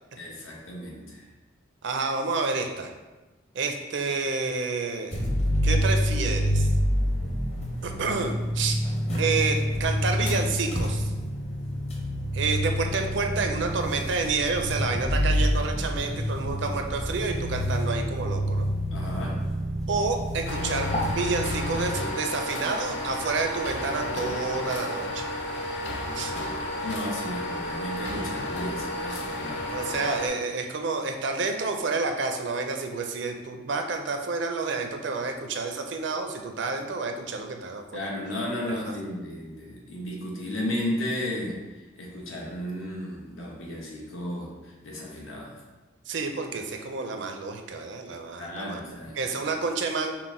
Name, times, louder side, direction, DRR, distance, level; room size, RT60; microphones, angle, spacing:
voice 1, 0.1-1.2 18.9-19.5 26.8-30.0 37.9-45.6 48.4-49.2 49.5-49.6, left 1 dB, 80° left, -3 dB, 1.1 m, -34 dB
voice 2, 1.8-2.9 3.5-5.3 5.6-6.7 7.8-8.8 9.2-11.1 12.3-18.7 19.9-25.3 26.1-26.3 29.7-38.1 46.1-48.8 49.2-50.1, right 4 dB, 60° right, 4 dB, 0.5 m, -29 dB
sound 1, 5.1-21.9, equal, 30° left, 0.8 m, -27 dB
sound 2, 20.4-30.3, left 1 dB, 60° left, 0.5 m, -32 dB
5.8 x 2.1 x 3.7 m, 1.2 s
head